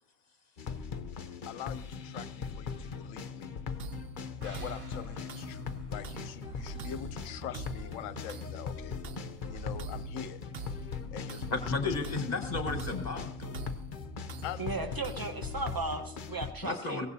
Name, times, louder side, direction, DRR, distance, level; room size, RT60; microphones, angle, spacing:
sound 1, 0.6-16.5, left 5 dB, 45° left, 0.7 m, -40 dB
voice 1, 1.5-3.6 4.4-9.0 9.4-10.4 11.1-11.7 14.4-14.6, left 10 dB, 70° left, 14 dB, 1.0 m, -43 dB
sound 2, 3.8-15.8, right 4 dB, 55° right, 0.8 m, -45 dB
sound 3, 4.4-7.9 8.2-8.3, right 2 dB, 70° right, 3.3 m, -56 dB
voice 2, 11.5-13.6 16.6-17.1, left 3 dB, 30° left, 7 dB, 1.3 m, -33 dB
voice 3, 14.6-17.1, right 3 dB, 15° right, 5 dB, 0.9 m, -36 dB
22.0 x 17.5 x 2.7 m, 0.83 s
omnidirectional pair, 1.5 m